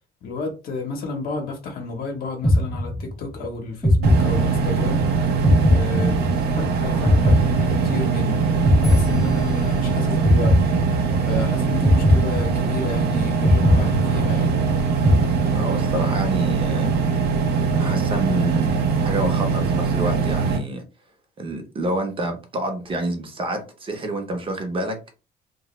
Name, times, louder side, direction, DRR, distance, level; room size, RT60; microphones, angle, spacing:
voice 1, 0.2-5.0 5.6-6.2 6.6-8.4 8.8-10.6 11.3-14.6, left 3 dB, 60° left, 0.8 m, -31 dB
sound 1, 2.4-3.3 3.8-4.9 5.4-6.6 7.0-8.2 8.6-9.8 10.2-11.3 11.8-13.0 13.4-14.6 15.0-15.9, left 1 dB, ahead, 0.4 m, -19 dB
sound 2, 4.0-20.6, right 5 dB, 70° right, 0.6 m, -22 dB
voice 2, 15.5-16.9 17.7-20.8 21.4-25.0, right 1 dB, 30° right, 0.7 m, -28 dB
2.2 x 2.1 x 3.0 m
cardioid pair, 110°, 17 cm